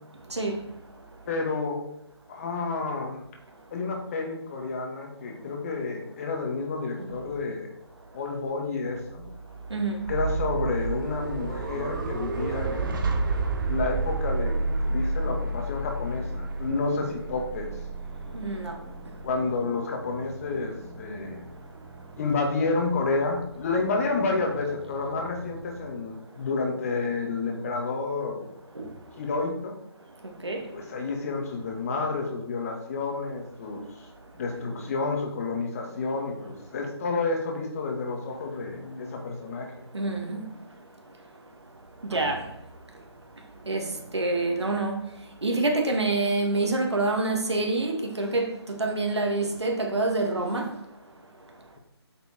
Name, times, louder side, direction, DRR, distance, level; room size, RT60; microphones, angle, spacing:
voice 1, 0.3-0.6 7.0-7.1 9.7-10.0 18.3-18.8 28.7-28.9 30.4-30.6 39.9-40.4 42.0-42.5 43.7-45.0 45.4-50.7, right 2 dB, 85° right, 2.5 m, -27 dB
voice 2, 1.3-1.8 2.3-3.3 3.7-7.7 8.1-9.3 10.1-13.2 13.7-17.7 19.2-21.4 22.2-28.4 29.2-29.7 30.5-34.1 34.4-39.9, left 3 dB, 35° left, 2.2 m, -30 dB
sound 1, 10.0-25.9, right 3 dB, 50° right, 1.9 m, -32 dB
8.6 x 6.7 x 4.6 m
figure-of-eight pair, 155°, 14 cm